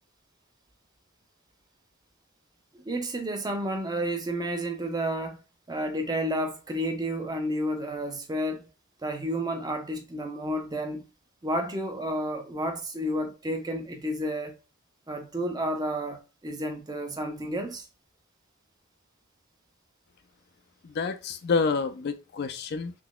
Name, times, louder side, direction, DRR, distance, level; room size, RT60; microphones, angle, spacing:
voice 1, 2.7-5.4 5.7-8.7 9.0-11.0 11.4-14.6 15.1-17.9, equal, 20° right, 0.5 m, -31 dB
voice 2, 20.8-22.9, left 4 dB, 50° left, 0.3 m, -28 dB
3.8 x 2.9 x 2.2 m
head